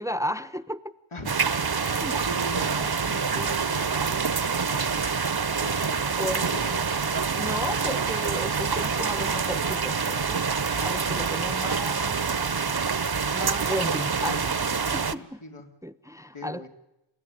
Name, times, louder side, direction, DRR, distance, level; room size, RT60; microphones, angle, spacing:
voice 1, 0.0-0.9 2.0-2.2 6.2-6.8 7.3-10.5 10.8-12.2 13.3-14.4 14.7-15.4 15.8-16.7, equal, 5° right, 12 dB, 0.8 m, -34 dB
voice 2, 1.1-5.2 5.6-6.6 11.5-11.7 13.6-15.7 16.3-16.7, left 1 dB, 85° left, 3 dB, 3.1 m, -42 dB
sound 1, 1.3-15.2, right 5 dB, 50° right, 0.9 m, -26 dB
28.0 x 14.0 x 9.9 m, 0.96 s
wide cardioid pair, 45°, 48 cm